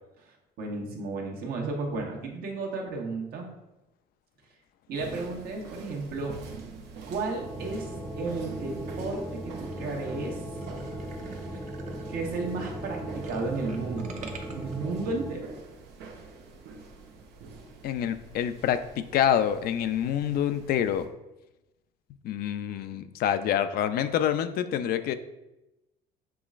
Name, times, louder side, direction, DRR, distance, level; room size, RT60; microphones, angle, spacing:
voice 1, 0.2-3.5 4.9-6.3 7.1-7.9 8.2-10.4 11.2-11.4 12.1-14.1 14.5-15.5, right 3 dB, 65° right, 1 dB, 1.0 m, -33 dB
sound 1, 4.9-21.1, right 4 dB, 85° right, 0.7 m, -46 dB
sound 2, 7.4-15.3, right 1 dB, 5° right, 0.6 m, -38 dB
sound 3, 9.6-9.8 10.2-10.3 10.6-14.7, right 4 dB, 45° right, 0.7 m, -46 dB
voice 2, 17.8-21.1 22.2-25.1, left 9 dB, 65° left, 11 dB, 0.4 m, -27 dB
6.9 x 3.1 x 2.4 m, 0.95 s
cardioid pair, 110°, 17 cm